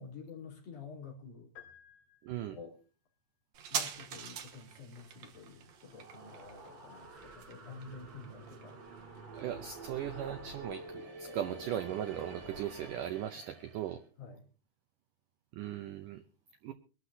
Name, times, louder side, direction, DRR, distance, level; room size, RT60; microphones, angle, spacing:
voice 1, 0.0-1.5 2.5-2.8 3.7-8.8 14.2-14.4, left 5 dB, 60° left, -1 dB, 5.0 m, -49 dB
sound 1, 1.6-2.9, left 9 dB, 80° left, 4.4 m, -57 dB
voice 2, 2.2-2.6 9.3-14.0 15.5-16.2 16.6-16.7, right 11 dB, 80° right, 8 dB, 1.9 m, -38 dB
sound 2, 3.5-10.6 10.9-11.0, right 7 dB, 65° right, 1.9 m, -44 dB
sound 3, 5.6-14.0, right 2 dB, 45° right, 3.7 m, -49 dB
23.5 x 12.0 x 2.8 m, 0.37 s
omnidirectional pair, 4.7 m